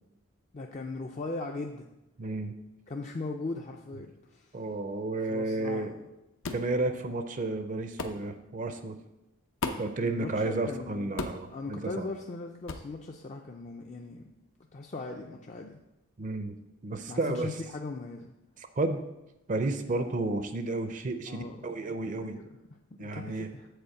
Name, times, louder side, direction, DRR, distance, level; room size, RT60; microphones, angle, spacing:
voice 1, 0.5-1.9 2.9-4.6 5.3-6.1 10.0-14.2 14.7-15.8 17.1-18.3 21.3-22.5 22.9-23.7, left 3 dB, 35° left, 2 dB, 0.4 m, -39 dB
voice 2, 2.2-2.5 3.9-4.1 4.5-6.0 6.5-9.0 9.8-12.1 16.2-16.6 16.8-17.7 18.6-19.0 19.5-22.4 23.0-23.5, right 2 dB, 40° right, 8 dB, 0.5 m, -32 dB
sound 1, 6.4-6.7 8.0-8.2 9.6-10.0 11.2-11.5 12.7-12.9, left 3 dB, 75° left, 0.7 m, -34 dB
7.9 x 4.4 x 7.0 m, 0.94 s
head